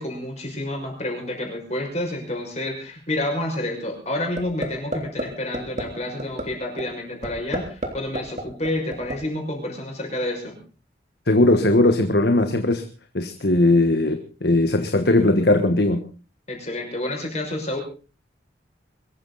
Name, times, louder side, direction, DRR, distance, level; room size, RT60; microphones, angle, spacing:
voice 1, 0.0-10.6 16.5-17.8, left 1 dB, 35° left, 2 dB, 5.8 m, -29 dB
sound 1, 4.4-4.7 4.9-5.2 5.5-5.8 6.2-6.4 6.8-6.9 7.2-7.9 8.1-9.1, right 1 dB, 40° right, 3.2 m, -27 dB
voice 2, 11.3-12.8 13.1-16.0, left 2 dB, 60° left, 7 dB, 1.5 m, -19 dB
23.0 x 14.0 x 4.1 m, 0.36 s
head